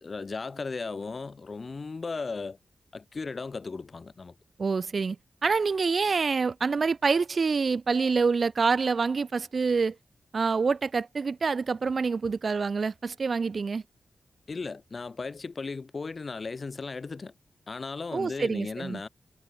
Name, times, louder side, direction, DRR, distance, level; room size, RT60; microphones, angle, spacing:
voice 1, 0.0-2.6 2.9-4.3 14.5-17.3 17.7-19.1, left 4 dB, 40° left, 1.2 m, -36 dB
voice 2, 4.6-5.2 5.4-10.0 10.3-13.8 18.1-19.0, right 4 dB, 50° right, 0.4 m, -26 dB
wide cardioid pair, 125°, 0 cm